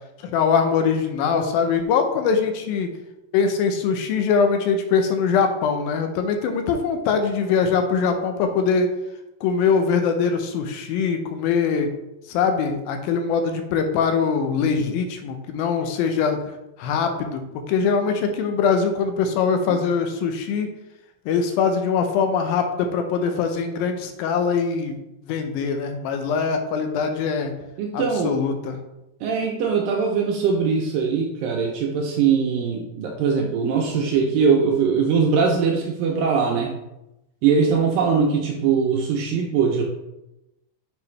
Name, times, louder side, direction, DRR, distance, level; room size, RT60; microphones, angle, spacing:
voice 1, 0.2-2.9 3.3-8.9 9.4-11.9 12.3-16.5 16.8-17.4 17.7-20.7 21.3-25.0 25.3-27.5 27.9-28.8, left 5 dB, 80° left, 6 dB, 2.3 m, -22 dB
voice 2, 27.8-28.4 29.2-36.8 37.4-39.8, right 5 dB, 80° right, 1 dB, 2.1 m, -21 dB
6.8 x 4.9 x 3.2 m, 0.92 s
omnidirectional pair, 4.5 m